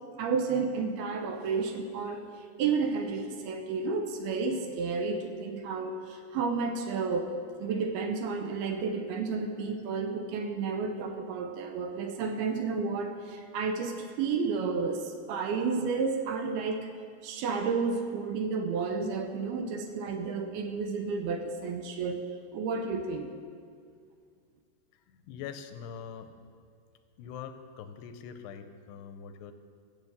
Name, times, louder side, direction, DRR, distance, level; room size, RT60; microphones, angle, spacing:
voice 1, 0.2-2.3 2.6-7.3 7.6-16.9 17.2-22.2 22.5-23.3, right 4 dB, 80° right, 5 dB, 2.6 m, -31 dB
voice 2, 25.1-26.3 27.2-29.5, left 7 dB, 85° left, 8 dB, 2.7 m, -43 dB
14.0 x 7.5 x 8.2 m, 2.1 s
omnidirectional pair, 4.8 m